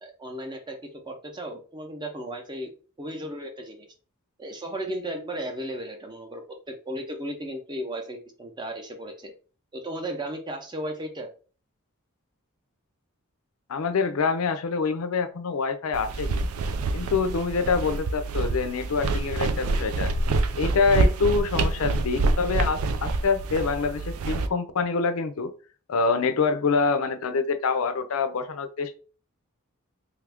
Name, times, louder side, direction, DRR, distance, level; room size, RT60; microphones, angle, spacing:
voice 1, 0.0-0.8 1.0-2.7 3.0-3.9 4.4-9.3 9.7-11.3, right 1 dB, 20° right, 4 dB, 0.6 m, -35 dB
voice 2, 13.7-16.5 16.9-20.1 20.6-25.5 25.9-29.0, left 4 dB, 75° left, 10 dB, 0.5 m, -26 dB
sound 1, 15.9-24.5, right 3 dB, 80° right, 0.4 m, -26 dB
3.3 x 2.4 x 3.4 m, 0.37 s
head